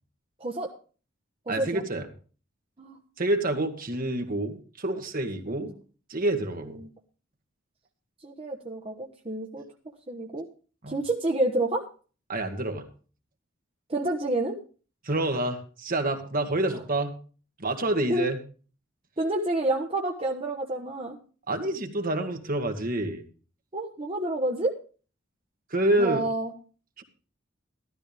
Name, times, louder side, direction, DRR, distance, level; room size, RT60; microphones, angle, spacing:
voice 1, 0.4-0.7 1.5-1.8 2.8-3.0 6.8-6.9 8.2-9.6 10.1-10.5 10.9-11.9 13.9-14.6 18.1-18.3 19.2-21.2 23.7-24.8 26.0-26.5, right 2 dB, 30° right, 1 dB, 1.2 m, -29 dB
voice 2, 1.5-2.0 3.2-5.7 6.1-6.8 10.8-11.0 12.3-12.8 15.0-17.1 17.6-18.4 21.5-23.2 25.7-26.2 27.0-27.1, right 1 dB, 45° right, 5 dB, 1.8 m, -27 dB
13.5 x 13.0 x 3.5 m, 0.38 s
head